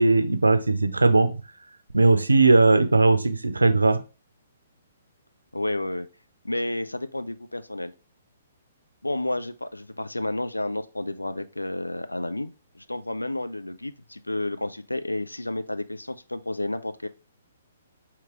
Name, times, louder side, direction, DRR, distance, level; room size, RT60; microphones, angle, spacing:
voice 1, 0.0-1.4 1.9-4.0, right 3 dB, 85° right, 0.5 m, -19 dB
voice 2, 5.5-6.1 6.4-7.9 9.0-17.1, left 1 dB, 90° left, 0.4 m, -31 dB
4.5 x 3.0 x 3.6 m
figure-of-eight pair, 125°, 0 cm